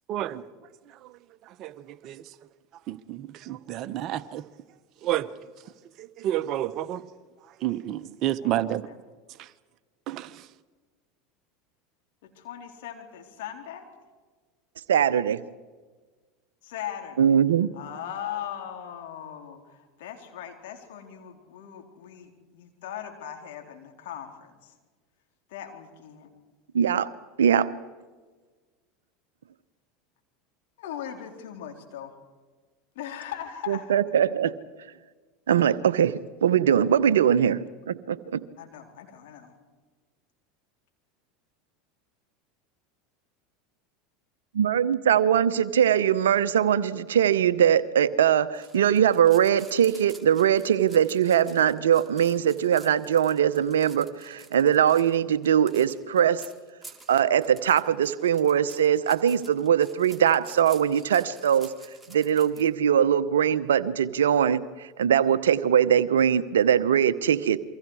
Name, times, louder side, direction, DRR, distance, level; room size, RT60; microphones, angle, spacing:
voice 1, 0.1-0.4 1.0-1.1 1.5-2.2 2.9-4.4 5.0-5.3 6.0-7.1 7.6-8.8 10.1-10.5, right 13 dB, 50° right, 1.2 m, -30 dB
voice 2, 12.2-13.9 16.6-17.3 17.7-24.7 25.5-26.3 30.8-32.2 33.0-33.9 38.6-39.5, left 10 dB, 70° left, 3.9 m, -39 dB
voice 3, 14.9-15.4 17.2-17.7 26.7-27.1 27.4-27.7 33.7-34.6 35.5-38.4 44.5-56.4 57.1-61.7 62.1-67.6, right 9 dB, 80° right, 0.8 m, -22 dB
sound 1, 48.5-62.7, right 3 dB, 5° right, 3.9 m, -50 dB
28.5 x 24.0 x 4.9 m
hypercardioid pair, 85°, 0 cm